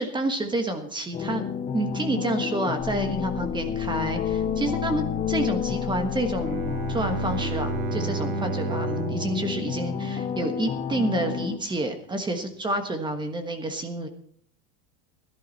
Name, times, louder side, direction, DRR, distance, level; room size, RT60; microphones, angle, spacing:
voice 1, 0.0-1.4 1.7-14.1, right 2 dB, 10° right, 7 dB, 1.3 m, -29 dB
sound 1, 1.1-11.6, left 7 dB, 15° left, 0.7 m, -30 dB
sound 2, 2.8-7.9, left 10 dB, 35° left, 2.6 m, -37 dB
Bowed string instrument, 6.3-10.6, right 12 dB, 70° right, 1.1 m, -33 dB
16.5 x 11.5 x 4.1 m, 0.62 s
supercardioid pair, 150°, 46 cm